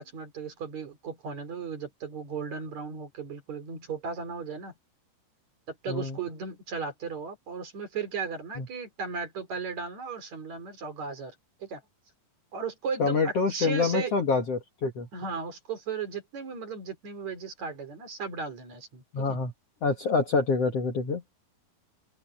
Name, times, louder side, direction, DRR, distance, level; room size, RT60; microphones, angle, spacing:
voice 1, 0.0-4.7 5.7-11.3 11.6-11.8 12.5-14.2 15.1-19.4, right 5 dB, 45° right, 4.6 m, -36 dB
voice 2, 5.9-6.2 8.6-8.7 13.0-15.1 19.1-19.5 19.8-21.4, left 4 dB, 50° left, 2.2 m, -26 dB
open air
omnidirectional pair, 4.5 m